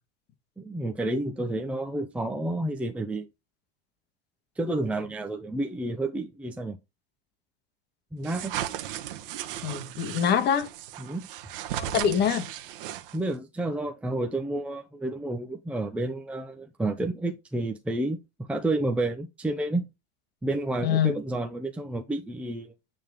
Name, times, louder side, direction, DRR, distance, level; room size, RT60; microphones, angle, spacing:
voice 1, 0.6-3.3 4.6-6.8 8.1-8.5 11.0-11.3 13.1-19.9 20.4-22.7, right 2 dB, 5° right, 0.7 m, -30 dB
sound 1, 8.2-13.4, right 12 dB, 65° right, 1.3 m, -36 dB
voice 2, 9.6-10.7 11.8-12.5 20.8-21.1, left 8 dB, 35° left, 1.6 m, -25 dB
8.8 x 3.8 x 3.6 m
supercardioid pair, 125°, 29 cm